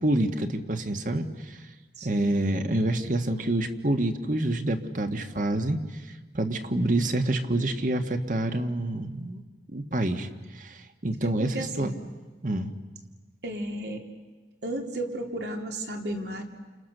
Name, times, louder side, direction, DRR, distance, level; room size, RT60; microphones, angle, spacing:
voice 1, 0.0-1.7 2.0-9.4 9.7-11.9 12.4-12.7, right 1 dB, 45° right, 6 dB, 1.6 m, -27 dB
voice 2, 2.0-2.3 11.2-12.0 13.4-14.1 14.6-16.4, right 1 dB, 75° right, 3 dB, 3.0 m, -34 dB
29.5 x 29.0 x 6.8 m, 1.3 s
head